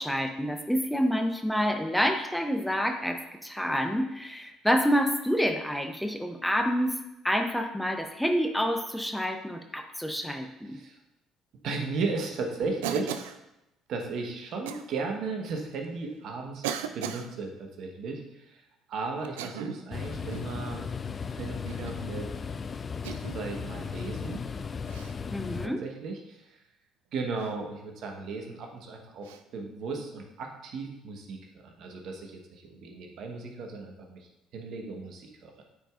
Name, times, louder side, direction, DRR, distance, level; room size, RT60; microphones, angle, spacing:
voice 1, 0.0-10.8 25.3-25.8, equal, 5° left, 5 dB, 0.7 m, -28 dB
voice 2, 11.5-13.1 13.9-16.6 16.9-18.6 18.9-22.3 23.3-24.4 25.6-26.6 27.1-35.6, right 4 dB, 60° right, 2 dB, 1.1 m, -36 dB
Cough, 12.8-13.4 14.7-14.9 15.7-15.8 16.6-17.3 19.2-19.9 20.3-20.6 21.7-22.0 23.0-23.4 24.9-25.2 27.4-27.5 29.2-29.4, right 9 dB, 80° right, 0.3 m, -36 dB
sound 1, 19.9-25.7, left 6 dB, 35° left, 0.3 m, -36 dB
8.7 x 4.7 x 2.4 m, 0.91 s
hypercardioid pair, 60°, 0 cm